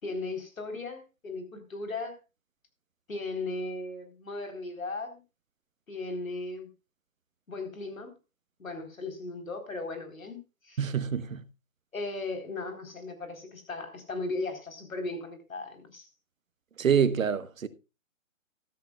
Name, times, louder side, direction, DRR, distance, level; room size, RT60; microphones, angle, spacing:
voice 1, 0.0-2.2 3.1-5.2 5.9-6.7 7.5-8.1 8.6-10.4 10.6-10.8 11.9-16.1, left 2 dB, 85° left, 4.0 m, -37 dB
voice 2, 10.8-11.4 16.8-17.7, right 7 dB, 75° right, 1.3 m, -26 dB
14.0 x 13.0 x 2.3 m
hypercardioid pair, 145°, 40 cm